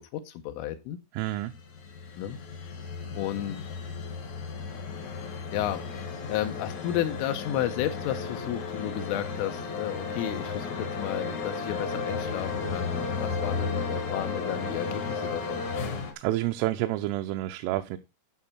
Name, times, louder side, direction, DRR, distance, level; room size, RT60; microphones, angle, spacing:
voice 1, 0.0-1.0 2.2-2.4 2.6-2.7 3.2-3.6 5.5-15.7, left 12 dB, 85° left, 3.2 m, -33 dB
voice 2, 1.1-1.5 16.2-18.0, right 15 dB, 85° right, 3.1 m, -29 dB
sound 1, 1.4-16.1, left 4 dB, 65° left, 1.7 m, -34 dB
12.0 x 5.4 x 4.3 m
omnidirectional pair, 5.8 m